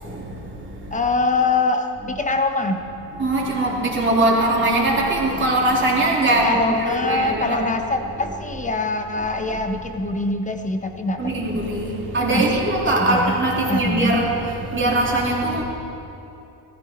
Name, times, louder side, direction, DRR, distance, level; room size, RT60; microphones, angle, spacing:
voice 1, 0.0-1.0 3.1-7.6 8.2-8.3 9.5-9.6 11.2-15.6, right 2 dB, 25° right, -3 dB, 3.4 m, -21 dB
voice 2, 0.9-2.8 6.4-11.6 12.3-12.7 12.9-13.3 13.7-14.1, left 3 dB, 15° left, 5 dB, 1.2 m, -24 dB
18.5 x 14.5 x 4.5 m, 2.8 s
cardioid pair, 115°, 48 cm